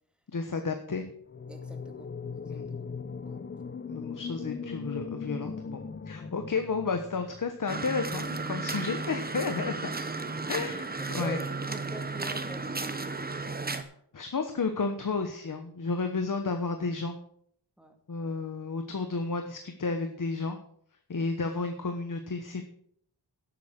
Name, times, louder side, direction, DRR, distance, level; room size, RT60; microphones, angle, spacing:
voice 1, 0.3-1.0 2.5-2.7 3.9-5.8 6.1-9.9 10.5-10.8 11.1-11.4 14.1-17.2 18.1-20.6 21.1-22.6, left 4 dB, 50° left, 6 dB, 1.2 m, -32 dB
sound 1, 1.3-7.4, left 5 dB, 30° left, 0.7 m, -39 dB
voice 2, 1.5-2.8 3.2-3.4 6.2-6.5 10.4-10.7 11.0-13.0 17.8-18.0 21.2-21.4, equal, ahead, 4 dB, 2.2 m, -46 dB
sound 2, 7.7-13.8, right 3 dB, 20° right, 1.1 m, -34 dB
11.0 x 8.4 x 5.9 m, 0.65 s
wide cardioid pair, 75°, 41 cm